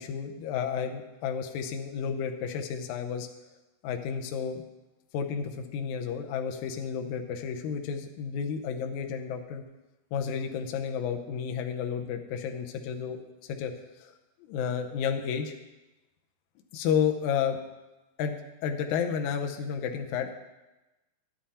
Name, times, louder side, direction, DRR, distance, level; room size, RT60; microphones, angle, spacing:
voice 1, 0.0-3.3 3.8-4.6 5.1-9.6 10.1-13.2 13.5-13.7 14.0-14.1 14.4-15.5 16.7-17.6 18.2-20.3, left 7 dB, 85° left, 4 dB, 1.7 m, -31 dB
11.5 x 9.0 x 4.3 m, 1.0 s
omnidirectional pair, 4.5 m